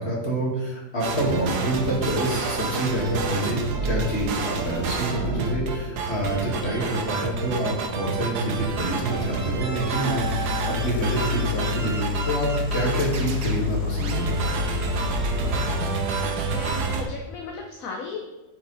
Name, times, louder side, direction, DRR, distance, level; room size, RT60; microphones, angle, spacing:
voice 1, 0.0-14.5, right 1 dB, 35° left, -3 dB, 2.3 m, -27 dB
sound 1, 1.0-17.0, right 4 dB, 70° right, 1.5 m, -29 dB
sound 2, 9.0-9.1 10.0-17.1, left 7 dB, 80° left, 1.5 m, -30 dB
voice 2, 16.4-18.2, left 4 dB, 55° left, 1 dB, 1.1 m, -36 dB
9.6 x 4.9 x 4.1 m, 1.1 s
omnidirectional pair, 1.9 m